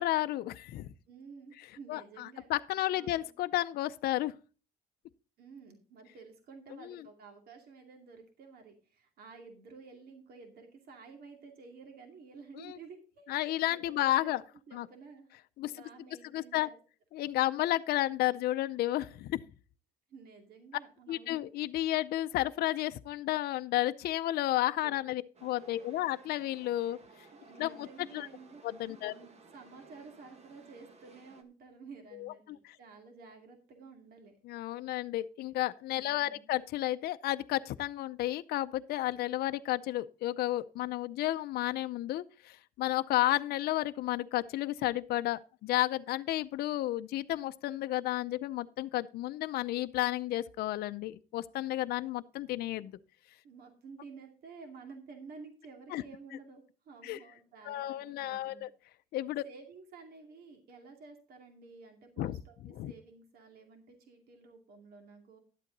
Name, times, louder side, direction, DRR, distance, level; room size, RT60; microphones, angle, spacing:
voice 1, 0.0-0.9 1.9-4.3 6.8-7.0 12.6-12.8 13.3-14.4 14.7-14.9 15.6-15.7 16.3-16.7 17.1-19.4 21.1-27.0 27.6-28.3 28.6-29.1 32.2-32.8 34.4-52.9 55.9-56.0 57.0-57.2 57.6-58.7 59.1-59.4 62.2-62.3 62.8-62.9, left 15 dB, 65° left, 0.5 m, -32 dB
voice 2, 1.1-3.3 5.4-14.3 14.7-15.3 15.6-16.8 20.1-21.4 24.9-25.0 25.7-26.0 26.9-27.0 27.3-28.6 28.9-34.3 36.0-36.5 53.4-58.7 59.4-65.4, right 4 dB, 65° right, 2.4 m, -52 dB
Chatter / Subway metro underground, 25.3-31.4, right 4 dB, 40° right, 1.5 m, -57 dB
11.5 x 8.3 x 3.9 m
cardioid pair, 110°, 17 cm